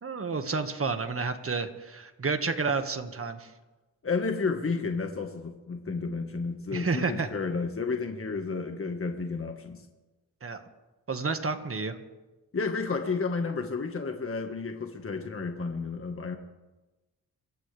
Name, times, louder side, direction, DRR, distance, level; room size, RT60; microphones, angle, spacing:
voice 1, 0.0-3.5 6.7-7.3 10.4-10.6 11.1-12.0, right 4 dB, 40° right, 7 dB, 1.8 m, -30 dB
voice 2, 4.0-9.8 12.5-16.4, left 4 dB, 40° left, 4 dB, 1.6 m, -31 dB
27.0 x 14.5 x 3.5 m, 1.1 s
cardioid pair, 75°, 35 cm